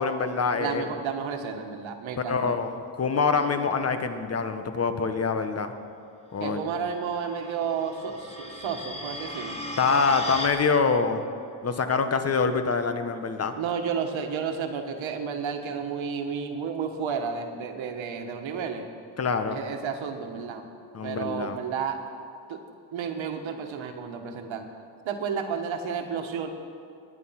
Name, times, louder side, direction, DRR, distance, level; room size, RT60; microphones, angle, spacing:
voice 1, 0.0-1.0 2.3-5.7 6.3-6.7 9.8-11.2 11.6-13.5 19.2-19.6 20.9-21.6, left 5 dB, 35° left, 8 dB, 1.1 m, -25 dB
voice 2, 0.6-2.6 6.4-9.6 13.6-18.8 19.5-20.6 21.0-22.0 22.5-22.6 22.9-24.7 25.1-26.5, right 6 dB, 85° right, 5 dB, 1.7 m, -32 dB
sound 1, 6.9-10.5, left 1 dB, 15° left, 1.9 m, -37 dB
20.5 x 9.8 x 5.9 m, 2.5 s
cardioid pair, 125°, 46 cm